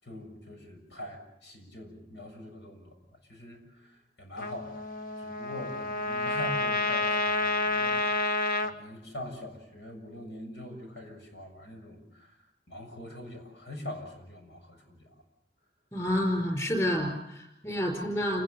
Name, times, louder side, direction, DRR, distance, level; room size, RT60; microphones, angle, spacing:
voice 1, 0.0-3.0 3.3-4.9 5.2-12.3 12.7-15.1, left 1 dB, 85° left, 4 dB, 7.2 m, -43 dB
Trumpet, 4.4-8.7, left 2 dB, 50° left, 1.4 m, -29 dB
voice 2, 15.9-18.4, equal, 20° left, 3 dB, 4.6 m, -29 dB
29.0 x 20.5 x 7.0 m, 0.80 s
head